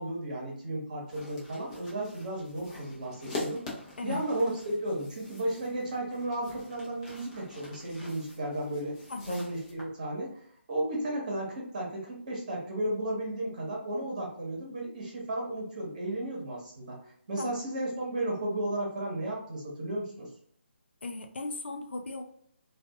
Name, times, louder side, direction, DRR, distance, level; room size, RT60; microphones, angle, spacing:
voice 1, 0.0-3.6 4.0-8.9 9.3-10.4 10.7-17.0 17.3-20.3, right 1 dB, 40° right, -2 dB, 1.0 m, -34 dB
sound 1, 1.1-9.8, left 2 dB, 25° left, 0.7 m, -44 dB
voice 2, 9.1-9.4 17.4-17.5 21.0-22.2, left 3 dB, 60° left, 5 dB, 0.5 m, -36 dB
2.5 x 2.4 x 2.3 m, 0.65 s
figure-of-eight pair, 145°, 7 cm